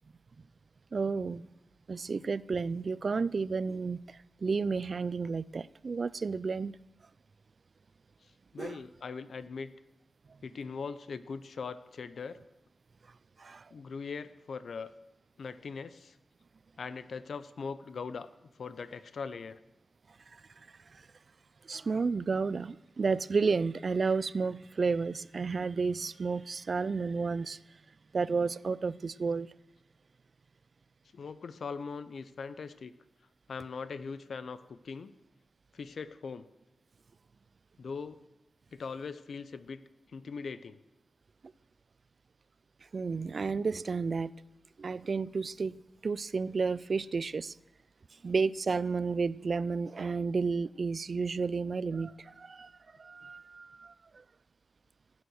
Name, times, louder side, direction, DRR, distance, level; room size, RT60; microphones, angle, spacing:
voice 1, 0.9-1.5 1.9-6.7 8.6-8.8 13.4-13.7 20.3-20.7 20.9-21.0 21.6-27.6 28.1-29.5 42.9-44.3 44.8-47.6 48.2-52.7 53.0-54.2, right 4 dB, 55° right, 19 dB, 0.4 m, -32 dB
voice 2, 8.2-9.7 10.4-12.4 13.7-14.9 15.4-16.2 16.8-19.6 31.1-32.9 33.5-35.1 35.7-36.5 37.8-38.2 38.7-39.8 40.1-40.8, left 5 dB, 75° left, 14 dB, 0.6 m, -41 dB
15.5 x 9.4 x 6.4 m, 0.95 s
wide cardioid pair, 80°, 0 cm